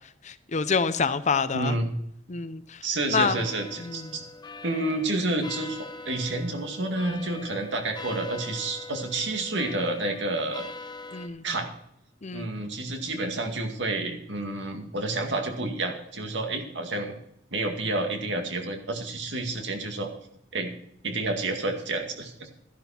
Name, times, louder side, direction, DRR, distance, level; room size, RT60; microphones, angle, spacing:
voice 1, 0.2-1.8 2.3-2.8 3.1-3.4 3.8-4.2 11.1-11.5 12.2-12.5, left 5 dB, 40° left, 13 dB, 0.6 m, -27 dB
voice 2, 1.5-1.9 2.8-4.2 4.6-10.7 11.4-11.7 12.3-17.2 17.5-20.1 20.5-20.8 21.0-22.6, right 2 dB, 75° right, 4 dB, 2.2 m, -29 dB
sound 1, 3.3-11.3, left 3 dB, 25° left, 1.2 m, -42 dB
13.0 x 11.0 x 4.4 m, 0.73 s
head